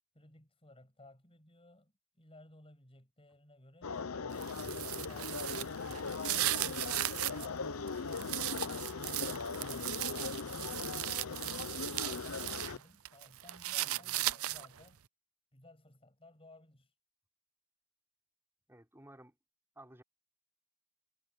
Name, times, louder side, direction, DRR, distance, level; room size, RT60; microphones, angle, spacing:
voice 1, 0.1-4.6 4.9-9.2 9.6-10.9 11.2-15.0 15.5-16.9, left 1 dB, 25° left, 6.9 m, -58 dB
sound 1, 3.8-12.8, left 4 dB, 70° left, 0.7 m, -39 dB
sound 2, 4.3-7.5 7.9-12.7 13.1-14.8, right 15 dB, 70° right, 0.6 m, -37 dB
voice 2, 13.8-14.2 18.7-19.4 19.8-20.0, right 1 dB, 10° right, 5.9 m, -55 dB
head